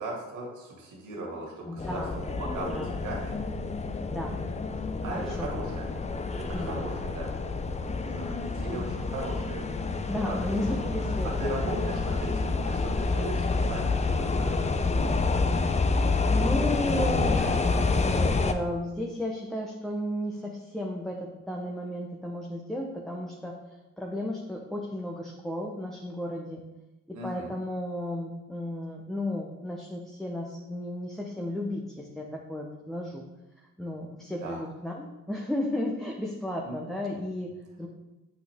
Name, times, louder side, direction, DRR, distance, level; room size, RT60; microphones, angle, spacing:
voice 1, 0.0-2.0 2.3-3.4 5.0-5.9 6.4-7.3 8.1-9.6 10.2-10.8 11.4-15.2 27.1-27.5 34.4-34.6 36.6-36.8, right 1 dB, 80° right, -2 dB, 2.3 m, -38 dB
voice 2, 1.6-2.2 2.6-3.0 4.1-4.4 5.1-5.8 6.5-6.8 10.1-11.9 16.3-26.6 27.1-33.2 33.8-37.9, left 1 dB, ahead, -1 dB, 1.0 m, -34 dB
sound 1, 1.8-18.5, left 3 dB, 20° left, 0.6 m, -28 dB
8.4 x 6.0 x 3.6 m, 1.0 s
cardioid pair, 90°, 30 cm